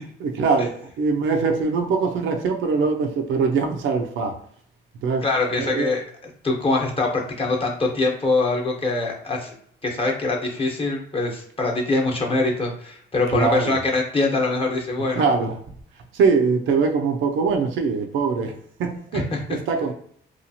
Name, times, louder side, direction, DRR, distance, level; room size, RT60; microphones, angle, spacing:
voice 1, 0.2-4.3 5.0-5.3 5.6-5.9 13.3-13.8 15.1-15.5 16.2-18.5 18.8-19.2 19.5-19.9, right 4 dB, 80° right, 4 dB, 0.5 m, -22 dB
voice 2, 5.2-9.5 9.8-15.3 19.1-19.4, left 3 dB, 25° left, -1 dB, 0.9 m, -23 dB
2.8 x 2.4 x 2.7 m, 0.62 s
cardioid pair, 90°, 20 cm